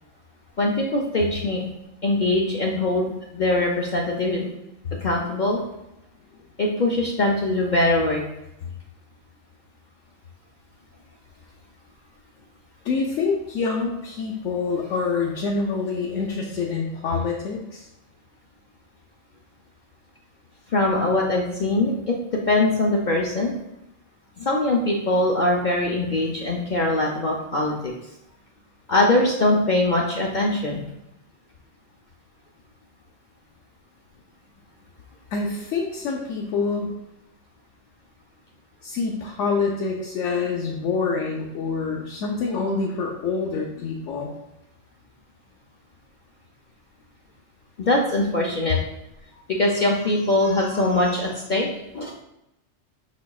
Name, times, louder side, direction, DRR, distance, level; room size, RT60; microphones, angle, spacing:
voice 1, 0.6-1.6 2.0-4.5 4.9-5.6 6.6-8.2 20.7-23.5 24.4-27.9 28.9-30.8 47.8-48.8 49.5-51.7 51.9-52.1, left 2 dB, 55° left, -2 dB, 0.5 m, -22 dB
voice 2, 12.8-17.9 35.3-36.9 38.8-44.3, left 4 dB, 70° left, -1 dB, 1.0 m, -26 dB
5.6 x 4.1 x 2.3 m, 0.88 s
omnidirectional pair, 1.4 m